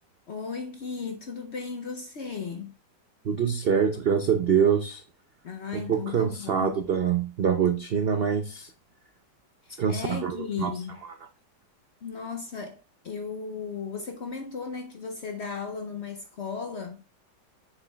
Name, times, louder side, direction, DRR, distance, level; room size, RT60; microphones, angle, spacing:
voice 1, 0.3-2.7 5.4-6.8 9.6-11.0 12.0-17.0, left 5 dB, 60° left, 0.7 m, -36 dB
voice 2, 3.2-5.0 5.7-8.7 9.8-10.7, right 7 dB, 80° right, 0.5 m, -25 dB
7.0 x 6.9 x 2.3 m
omnidirectional pair, 1.9 m